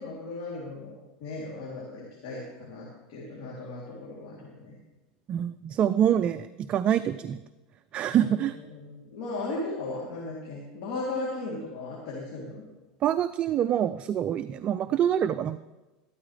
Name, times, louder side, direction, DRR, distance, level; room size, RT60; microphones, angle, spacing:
voice 1, 0.0-4.8 8.1-12.6, left 2 dB, 70° left, -5 dB, 3.1 m, -37 dB
voice 2, 5.3-7.4 7.9-8.6 13.0-15.6, right 10 dB, 35° right, 11 dB, 0.4 m, -25 dB
13.5 x 12.5 x 3.3 m, 1.1 s
supercardioid pair, 130°, 4 cm